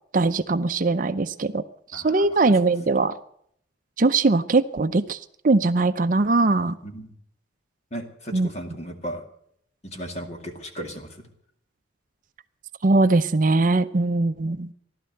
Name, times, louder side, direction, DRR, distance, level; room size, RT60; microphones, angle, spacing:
voice 1, 0.1-1.6 1.9-3.1 4.0-5.2 5.4-6.8 8.3-8.5 12.8-14.7, right 3 dB, 45° right, 11 dB, 0.5 m, -21 dB
voice 2, 1.9-2.5 6.8-7.1 7.9-9.2 9.8-11.2, equal, 35° left, 5 dB, 2.2 m, -36 dB
15.5 x 12.0 x 7.6 m, 0.68 s
head